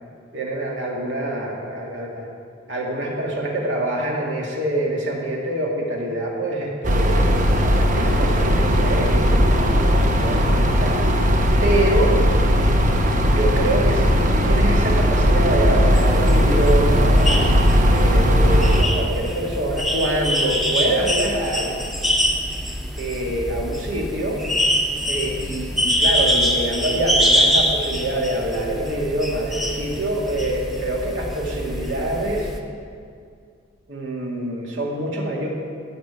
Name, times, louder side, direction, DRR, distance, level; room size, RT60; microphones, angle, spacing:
voice 1, 0.3-2.3 2.7-11.0 11.6-12.2 13.3-21.7 23.0-24.4 25.1-32.5 33.9-35.5, right 1 dB, 75° right, -2 dB, 2.2 m, -25 dB
sound 1, 6.8-18.8, equal, 40° right, 0.9 m, -17 dB
sound 2, 15.9-32.6, equal, ahead, 0.9 m, -24 dB
15.5 x 5.3 x 8.2 m, 2.3 s
head